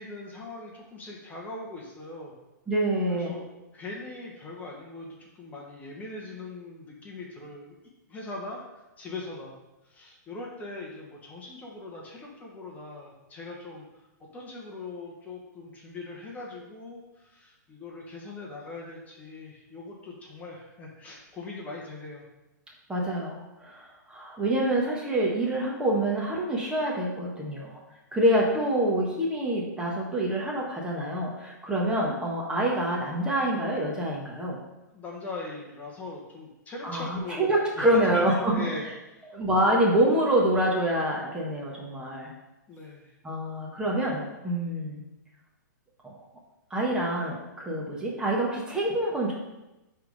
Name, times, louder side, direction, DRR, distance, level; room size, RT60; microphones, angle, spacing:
voice 1, 0.0-2.4 3.1-3.4 3.7-7.7 8.1-9.5 9.8-22.3 34.9-37.4 37.8-39.3 42.7-43.1, left 2 dB, 15° left, -2 dB, 1.2 m, -41 dB
voice 2, 2.7-3.3 22.9-27.8 28.1-34.6 36.8-38.6 39.3-42.3 43.2-45.0 46.0-46.2 46.7-49.4, right 1 dB, 10° right, -3 dB, 1.2 m, -26 dB
10.0 x 3.6 x 4.0 m, 0.99 s
hypercardioid pair, 140°, 10 cm